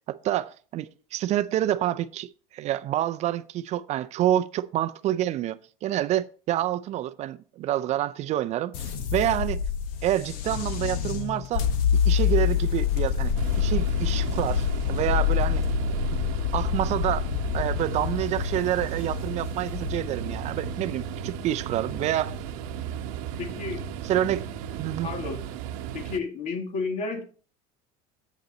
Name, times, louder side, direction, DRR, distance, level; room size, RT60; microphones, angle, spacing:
voice 1, 0.1-9.6 10.0-15.6 16.5-17.3 17.5-22.4 24.0-24.4 24.8-25.1, right 13 dB, 40° right, 0.4 m, -28 dB
sound 1, 8.7-22.9, left 8 dB, 80° left, 1.2 m, -27 dB
sound 2, 13.4-26.2, right 8 dB, 80° right, 0.8 m, -35 dB
voice 2, 23.4-23.8 24.1-24.3 25.0-25.4 25.9-27.2, left 4 dB, 45° left, 1.7 m, -32 dB
8.3 x 6.5 x 4.1 m
cardioid pair, 140°, 18 cm